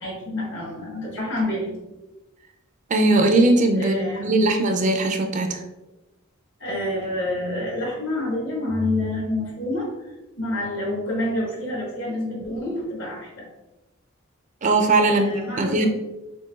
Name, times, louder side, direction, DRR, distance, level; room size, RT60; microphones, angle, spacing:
voice 1, 0.0-1.7 3.7-4.5 6.6-9.9 10.4-13.4 15.0-15.9, left 1 dB, 60° left, -3 dB, 1.4 m, -28 dB
voice 2, 2.9-5.6 14.6-15.3 15.6-15.9, right 2 dB, 35° right, 5 dB, 0.4 m, -19 dB
6.7 x 2.6 x 2.4 m, 1.0 s
head